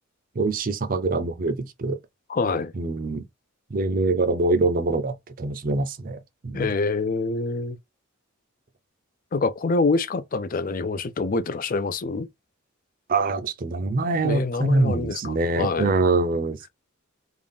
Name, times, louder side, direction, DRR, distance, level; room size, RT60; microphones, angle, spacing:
voice 1, 0.4-2.0 2.7-3.2 3.7-6.7 13.1-16.7, right 3 dB, 40° right, 0.5 m, -24 dB
voice 2, 2.3-2.7 6.5-7.8 9.3-12.3 14.2-15.9, left 3 dB, 40° left, 0.4 m, -26 dB
3.6 x 2.4 x 3.5 m
head